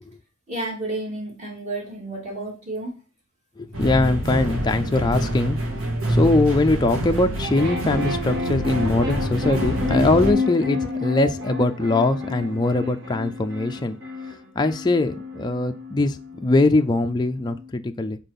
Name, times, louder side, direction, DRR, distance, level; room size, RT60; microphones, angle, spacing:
voice 1, 0.5-2.9, right 2 dB, 35° right, -2 dB, 2.9 m, -31 dB
voice 2, 3.6-5.6 6.1-14.0 14.6-18.2, left 2 dB, 20° left, 5 dB, 0.4 m, -21 dB
sound 1, 3.7-10.3, equal, 70° right, 2.1 m, -26 dB
sound 2, 7.4-17.7, left 3 dB, 55° right, 2.0 m, -30 dB
5.8 x 4.5 x 5.2 m, 0.33 s
head